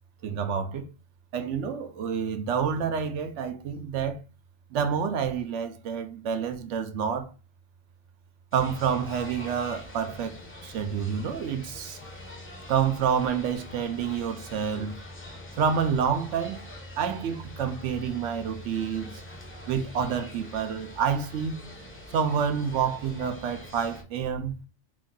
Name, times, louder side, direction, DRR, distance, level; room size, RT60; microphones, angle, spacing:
voice 1, 0.2-0.9 1.3-4.2 4.7-7.3 8.5-10.4 10.6-12.0 12.7-14.9 15.6-16.7 17.0-19.2 19.7-21.5 22.1-24.6, right 7 dB, 80° right, 0.9 m, -28 dB
sound 1, 8.5-24.0, left 1 dB, 15° left, 0.5 m, -44 dB
3.0 x 2.6 x 3.7 m
omnidirectional pair, 1.3 m